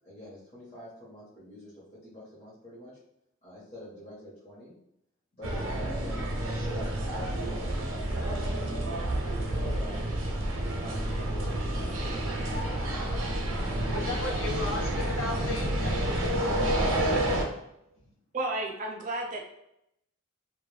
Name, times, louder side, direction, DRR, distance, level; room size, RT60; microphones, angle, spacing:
voice 1, 0.0-3.0 3.4-4.7 5.3-9.0 9.4-10.0 10.6-13.3 13.8-15.0, left 1 dB, 35° left, -11 dB, 0.9 m, -46 dB
sound 1, 5.4-17.4, right 1 dB, 90° right, 0.5 m, -29 dB
voice 2, 13.9-16.9 18.0-18.1, left 3 dB, 70° left, 0 dB, 0.6 m, -36 dB
voice 3, 18.3-19.4, right 2 dB, 40° right, 1 dB, 0.4 m, -32 dB
2.3 x 2.1 x 3.1 m, 0.80 s
head